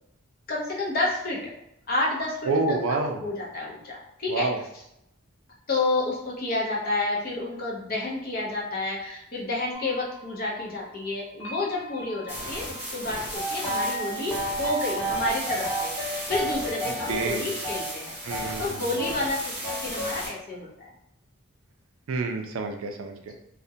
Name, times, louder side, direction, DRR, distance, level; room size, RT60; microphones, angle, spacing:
voice 1, 0.5-1.5 1.9-2.5 2.9-4.5 5.7-18.1 18.6-20.9, left 2 dB, 45° left, -3 dB, 0.6 m, -30 dB
voice 2, 2.4-3.2 4.3-4.6 16.8-17.5 18.2-18.8 22.1-23.3, right 3 dB, 70° right, 4 dB, 0.4 m, -28 dB
sound 1, 9.7-16.1, right 4 dB, 75° left, 1.0 m, -40 dB
sound 2, 12.3-20.3, equal, 10° right, 0.7 m, -36 dB
sound 3, 13.3-14.0 14.3-18.6 19.0-19.2 19.6-20.2, equal, 25° left, 0.9 m, -32 dB
2.4 x 2.1 x 2.6 m, 0.81 s
head